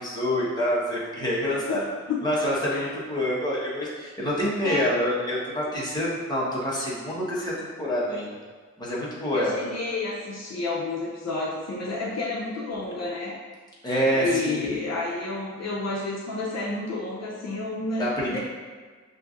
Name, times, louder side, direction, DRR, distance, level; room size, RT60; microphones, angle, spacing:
voice 1, 0.0-1.8 2.2-8.3 8.8-9.5 13.8-14.6 18.0-18.4, equal, 15° left, -8 dB, 1.1 m, -27 dB
voice 2, 1.4-1.8 2.1-2.2 2.7-2.9 4.6-4.9 9.3-13.4 14.1-18.4, left 3 dB, 60° left, -4 dB, 0.6 m, -30 dB
6.4 x 2.7 x 2.4 m, 1.5 s
wide cardioid pair, 150°, 29 cm